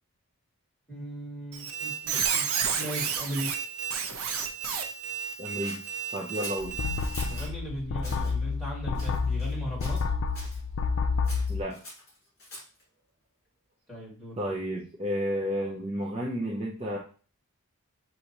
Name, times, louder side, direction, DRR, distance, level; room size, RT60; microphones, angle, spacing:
voice 1, 0.9-2.4 2.7-3.6 7.2-10.0 13.9-14.4, right 1 dB, ahead, -8 dB, 2.5 m, -37 dB
Squeak, 1.5-7.5, right 7 dB, 75° right, 0.6 m, -32 dB
voice 2, 5.4-5.8 6.1-6.8 11.5-11.8 14.4-17.0, equal, 25° right, -4 dB, 0.6 m, -31 dB
Scissors, 5.6-7.5 8.0-8.3 8.9-9.5 9.8-10.6 11.2-12.8, left 1 dB, 45° left, 2.6 m, -44 dB
sound 1, 6.6-11.6, left 4 dB, 65° left, 0.4 m, -29 dB
6.6 x 2.8 x 2.9 m, 0.38 s
head